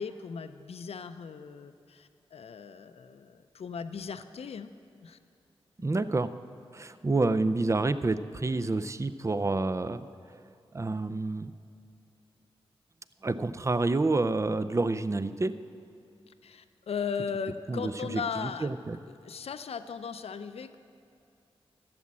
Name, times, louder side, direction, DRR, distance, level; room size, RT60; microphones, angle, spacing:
voice 1, 0.0-4.7 5.0-5.2 16.3-18.7 19.1-20.8, left 6 dB, 75° left, 10 dB, 0.5 m, -37 dB
voice 2, 5.8-6.3 6.7-10.4 10.7-11.5 13.2-15.5 17.7-19.0, right 3 dB, 30° right, 13 dB, 0.5 m, -28 dB
12.0 x 7.4 x 7.4 m, 2.6 s
cardioid pair, 55°, 10 cm